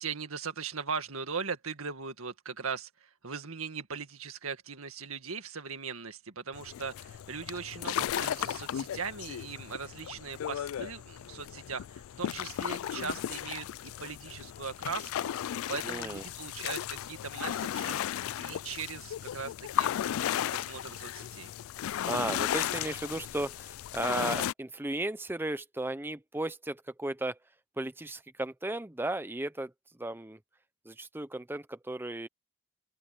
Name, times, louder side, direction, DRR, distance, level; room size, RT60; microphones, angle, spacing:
voice 1, 0.0-15.3 15.7-18.0 18.4-19.9 20.2-21.5, right 5 dB, 80° right, 1.9 m, -39 dB
sound 1, 6.5-24.5, left 10 dB, 75° left, 0.3 m, -35 dB
voice 2, 15.8-16.2 22.0-27.4 27.8-29.7 30.0-30.4 30.8-32.3, right 1 dB, 10° right, 0.6 m, -35 dB
open air
head